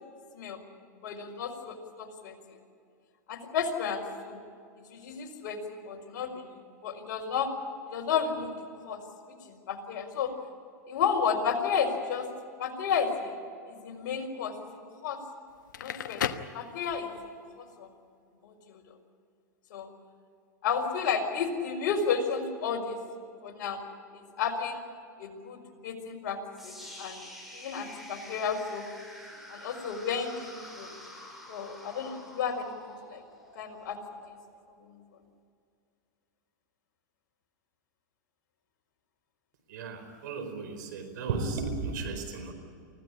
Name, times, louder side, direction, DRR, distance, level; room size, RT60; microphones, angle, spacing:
voice 1, 1.0-2.3 3.3-4.4 4.9-6.5 6.8-7.5 7.9-8.5 8.8-9.0 9.4-10.3 10.9-12.3 12.6-13.3 13.7-14.5 15.0-15.2 15.8-16.2 16.5-17.1 17.6-17.9 18.4-18.8 19.7-19.9 20.6-23.0 23.4-23.8 24.4-24.8 25.2-26.4 26.6-27.2 27.5-28.8 29.5-30.9 31.5-33.2 33.5-34.0 34.9-35.0, left 6 dB, 65° left, 1 dB, 4.7 m, -32 dB
Crackle, 15.5-17.3, left 9 dB, 80° left, 1.2 m, -35 dB
sound 1, 26.6-34.6, left 1 dB, ahead, 6.8 m, -48 dB
voice 2, 39.7-42.5, right 4 dB, 70° right, 7 dB, 4.8 m, -34 dB
24.5 x 16.0 x 10.0 m, 2.3 s
hypercardioid pair, 115°, 10 cm